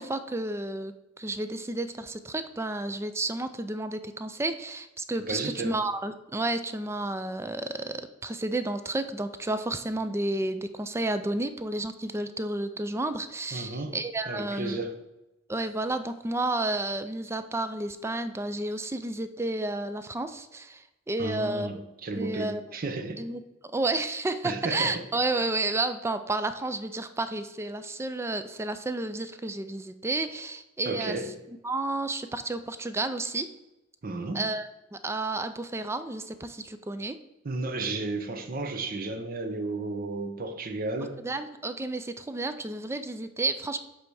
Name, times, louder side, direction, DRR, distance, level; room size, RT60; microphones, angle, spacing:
voice 1, 0.0-14.8 15.5-21.7 22.1-22.6 23.2-23.4 23.7-31.2 31.6-33.5 34.3-37.2 41.2-43.8, right 2 dB, 15° right, 0.4 m, -31 dB
voice 2, 5.3-5.7 13.5-14.0 14.3-15.0 21.2-23.2 24.4-25.0 30.8-31.4 34.0-34.5 37.4-41.2, right 2 dB, 45° right, 0.7 m, -33 dB
7.7 x 3.4 x 4.7 m
head